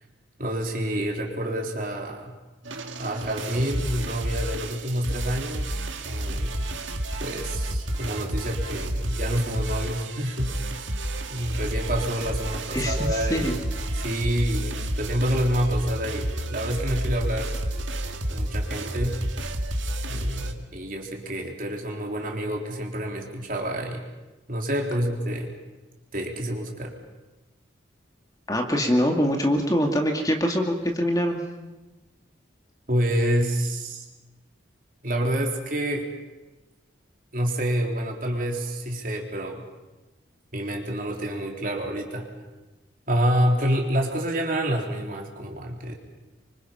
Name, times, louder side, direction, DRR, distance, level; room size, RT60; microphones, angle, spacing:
voice 1, 0.4-2.4 3.0-6.6 7.2-10.8 11.3-13.5 13.9-17.5 18.3-19.2 20.1-24.0 24.5-25.5 26.1-26.9 32.9-34.0 35.0-36.1 37.3-39.6 40.5-42.3 43.1-45.9, equal, 45° right, 1 dB, 3.7 m, -28 dB
sound 1, 2.6-20.5, right 1 dB, 90° right, 2.0 m, -30 dB
voice 2, 12.7-13.5 28.5-31.4, equal, 20° left, 2 dB, 2.3 m, -24 dB
27.5 x 25.0 x 5.8 m, 1.1 s
head